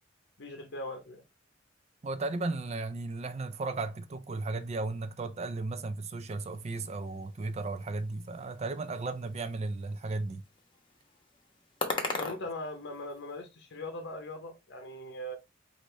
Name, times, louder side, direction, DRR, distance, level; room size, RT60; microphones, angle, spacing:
voice 1, 0.4-1.2 12.2-15.4, left 1 dB, 65° left, 0.8 m, -40 dB
voice 2, 2.0-10.4, right 3 dB, 35° right, 0.4 m, -35 dB
sound 1, 6.2-13.4, left 3 dB, 25° left, 0.9 m, -41 dB
4.8 x 2.6 x 3.1 m
head